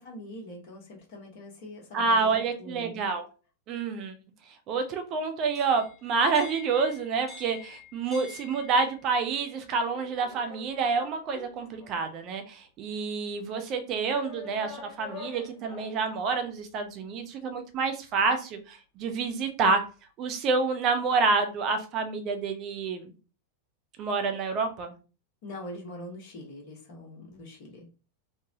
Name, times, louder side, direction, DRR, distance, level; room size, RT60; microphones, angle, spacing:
voice 1, 0.0-3.0 25.4-27.9, left 1 dB, 50° left, 0 dB, 1.1 m, -43 dB
voice 2, 1.9-3.2 3.7-4.1 4.7-19.8 20.2-23.1 24.0-24.9, right 4 dB, 35° right, 7 dB, 0.5 m, -28 dB
sound 1, 5.4-9.1 9.9-12.2 12.9-13.0 14.1-16.0, left 5 dB, 20° left, 1.2 m, -47 dB
3.3 x 2.1 x 2.7 m, 0.34 s
figure-of-eight pair, 90°, 0 cm